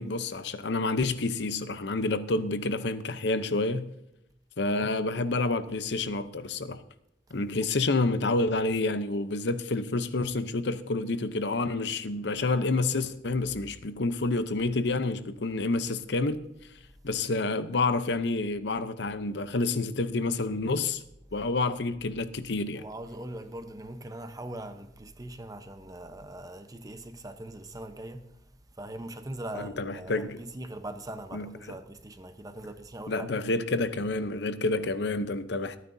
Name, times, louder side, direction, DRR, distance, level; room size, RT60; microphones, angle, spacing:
voice 1, 0.0-3.9 4.6-6.8 7.3-16.4 17.0-21.0 21.3-22.8 29.5-30.4 31.3-31.8 33.1-35.8, left 3 dB, 65° left, 0.8 m, -29 dB
voice 2, 22.8-28.3 28.8-33.4, right 1 dB, 20° right, 0.9 m, -41 dB
24.5 x 9.4 x 2.7 m
head